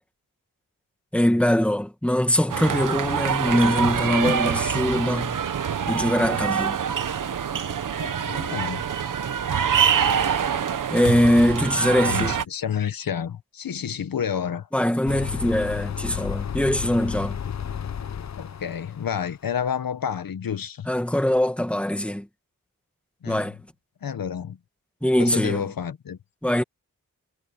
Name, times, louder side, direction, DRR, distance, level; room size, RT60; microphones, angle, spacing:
voice 1, 1.1-5.4 5.9-6.8 10.9-12.4 14.7-17.4 20.9-22.3 23.3-23.5 25.0-25.6 26.4-26.6, left 1 dB, 5° left, 2.0 m, -22 dB
sound 1, 2.5-12.4, right 7 dB, 65° right, 1.1 m, -25 dB
voice 2, 8.0-8.8 12.0-14.7 18.4-20.9 23.2-23.5 24.0-24.6 25.2-26.2, left 8 dB, 75° left, 1.2 m, -30 dB
sound 2, 15.1-19.3, left 8 dB, 50° left, 0.9 m, -32 dB
wide cardioid pair, 170°, 35 cm